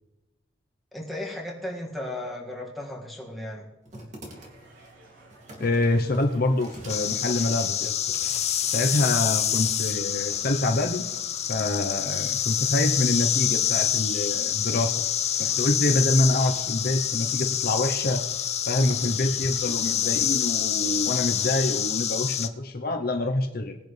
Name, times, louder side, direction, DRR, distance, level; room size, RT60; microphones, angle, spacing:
voice 1, 0.9-3.7, left 1 dB, ahead, -4 dB, 2.1 m, -35 dB
sound 1, 3.8-21.7, right 1 dB, 40° right, 2.6 m, -49 dB
sound 2, 4.2-21.9, right 1 dB, 80° right, 3.8 m, -54 dB
voice 2, 5.6-7.9 8.7-11.0 11.5-15.0 15.4-18.2 18.7-23.8, left 2 dB, 55° left, 4 dB, 0.9 m, -26 dB
sound 3, 6.9-22.5, left 10 dB, 35° left, 0.5 m, -27 dB
20.0 x 10.5 x 3.4 m, 1.0 s
head